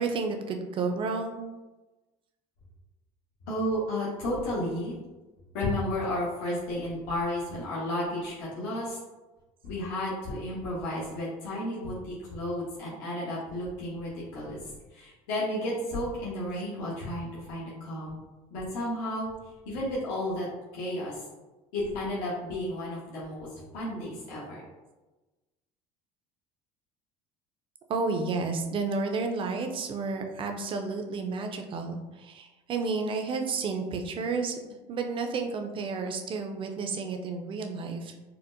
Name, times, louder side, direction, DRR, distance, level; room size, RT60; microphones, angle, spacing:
voice 1, 0.0-1.4 27.9-34.6 34.9-38.1, right 4 dB, 35° right, 5 dB, 0.5 m, -31 dB
voice 2, 3.5-5.0 5.5-9.0 9.6-14.6 14.9-18.1 18.5-19.3 19.6-20.5 20.7-21.2 21.7-23.5 23.7-24.6, left 1 dB, 80° left, -7 dB, 1.0 m, -32 dB
4.3 x 2.1 x 2.6 m, 1.1 s
supercardioid pair, 110°, 14 cm